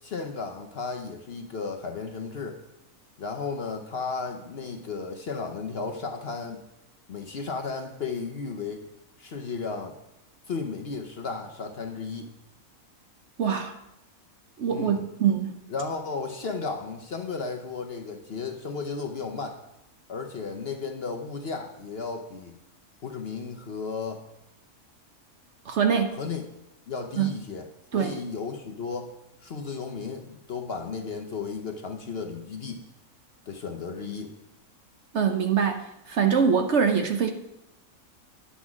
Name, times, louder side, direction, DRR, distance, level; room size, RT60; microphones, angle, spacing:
voice 1, 0.0-2.6 3.2-6.6 7.1-8.8 9.2-10.0 10.5-12.3 14.7-15.0 15.7-19.6 20.1-22.6 23.0-24.2 26.1-26.4 26.9-27.7 27.9-29.1 29.4-32.8 33.5-34.3, left 4 dB, 50° left, 4 dB, 0.8 m, -34 dB
voice 2, 13.4-13.8 14.6-15.5 25.7-26.2 27.2-27.4 27.9-28.2 35.1-37.3, right 7 dB, 60° right, 6 dB, 0.9 m, -24 dB
9.6 x 6.0 x 6.0 m, 0.88 s
omnidirectional pair, 1.6 m